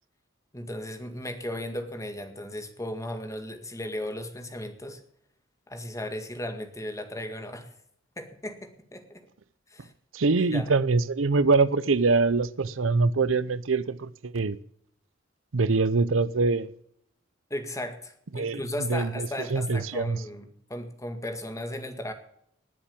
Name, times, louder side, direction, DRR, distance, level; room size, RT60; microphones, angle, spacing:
voice 1, 0.5-5.0 5.7-7.7 8.2-9.3 9.7-9.9 10.4-10.7 17.5-22.1, left 1 dB, 15° left, 1.9 m, -36 dB
voice 2, 10.1-14.6 15.5-16.7 18.3-18.6 18.9-20.2, right 3 dB, 80° right, 0.7 m, -24 dB
19.5 x 7.3 x 7.1 m
head